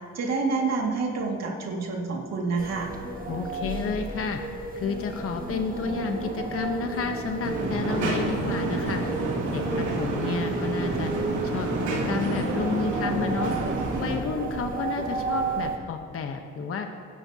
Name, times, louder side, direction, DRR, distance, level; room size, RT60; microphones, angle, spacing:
voice 1, 0.1-2.9, right 4 dB, 60° right, -1 dB, 2.2 m, -28 dB
sound 1, 2.6-15.8, right 3 dB, 30° right, 1.4 m, -33 dB
voice 2, 3.3-4.4 4.7-9.0 9.5-11.1 11.4-13.5 14.0-16.9, left 5 dB, 50° left, 5 dB, 1.0 m, -31 dB
sound 2, 7.4-14.2, right 2 dB, 75° right, 2.6 m, -29 dB
23.0 x 11.0 x 2.8 m, 2.2 s
cardioid pair, 90°, 30 cm